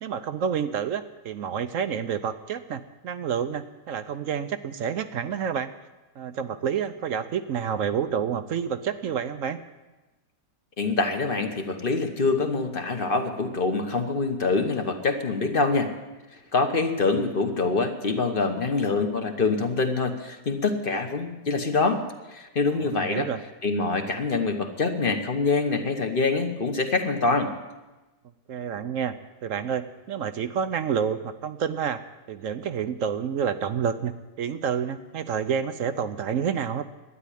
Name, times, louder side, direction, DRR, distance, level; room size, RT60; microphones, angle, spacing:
voice 1, 0.0-5.7 6.2-9.6 22.9-23.4 28.5-29.1 29.4-32.0 32.3-34.1 34.4-36.8, right 7 dB, 60° right, 11 dB, 0.9 m, -29 dB
voice 2, 10.8-15.9 16.5-22.0 22.3-23.3 23.6-27.5, left 3 dB, 35° left, 6 dB, 1.1 m, -25 dB
12.5 x 9.7 x 9.9 m, 1.1 s
omnidirectional pair, 1.7 m